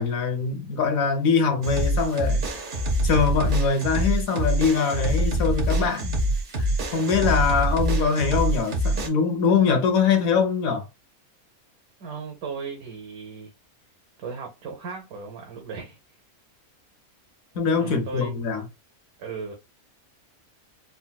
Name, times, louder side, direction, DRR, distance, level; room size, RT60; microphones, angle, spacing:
voice 1, 0.0-2.4 3.0-6.2 6.9-10.9 17.5-18.7, left 5 dB, 75° left, 1.2 m, -23 dB
sound 1, 1.6-9.1, right 1 dB, 50° right, 0.6 m, -25 dB
voice 2, 7.4-7.7 12.0-13.5 14.2-16.0 17.8-18.5 19.2-19.5, right 5 dB, 85° right, 1.2 m, -36 dB
3.8 x 2.2 x 2.2 m
omnidirectional pair, 1.5 m